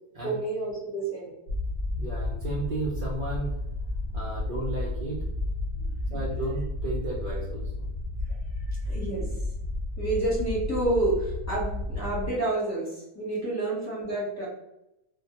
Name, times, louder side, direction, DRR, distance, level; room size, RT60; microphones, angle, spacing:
voice 1, 0.2-1.3 4.1-4.2 5.8-6.3 8.6-9.4 10.0-14.5, right 2 dB, 15° left, -7 dB, 0.7 m, -29 dB
sound 1, 1.5-12.3, left 2 dB, 65° left, 0.9 m, -32 dB
voice 2, 1.9-3.6 4.1-5.2 6.1-7.9, right 2 dB, 60° right, -4 dB, 0.5 m, -33 dB
2.2 x 2.1 x 2.8 m, 0.85 s
omnidirectional pair, 1.4 m